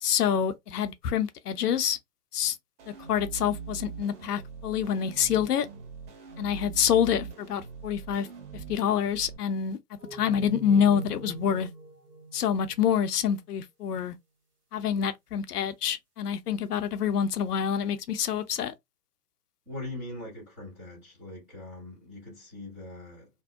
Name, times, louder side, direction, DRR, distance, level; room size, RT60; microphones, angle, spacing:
voice 1, 0.0-2.0 2.3-2.6 3.1-5.7 6.4-8.3 8.5-9.8 10.1-11.7 12.3-14.1 14.7-18.7, left 8 dB, 70° left, 0.6 m, -27 dB
sound 1, 2.8-9.4, right 5 dB, 45° right, 1.3 m, -42 dB
sound 2, 10.0-13.4, right 3 dB, 70° right, 1.1 m, -41 dB
voice 2, 19.7-23.3, left 2 dB, 5° right, 0.4 m, -41 dB
2.6 x 2.0 x 2.3 m
figure-of-eight pair, 120°, 49 cm